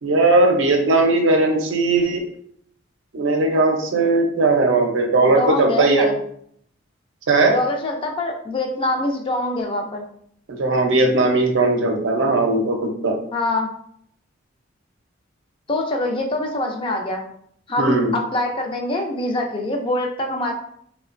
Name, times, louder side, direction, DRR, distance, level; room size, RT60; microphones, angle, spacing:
voice 1, 0.0-2.2 3.1-6.1 7.3-7.5 10.6-13.1 17.8-18.1, right 2 dB, 70° right, 2 dB, 0.5 m, -18 dB
voice 2, 5.4-6.1 7.5-10.0 13.3-13.7 15.7-17.3 17.7-20.5, left 2 dB, 25° left, 2 dB, 0.4 m, -24 dB
2.9 x 2.1 x 2.4 m, 0.66 s
head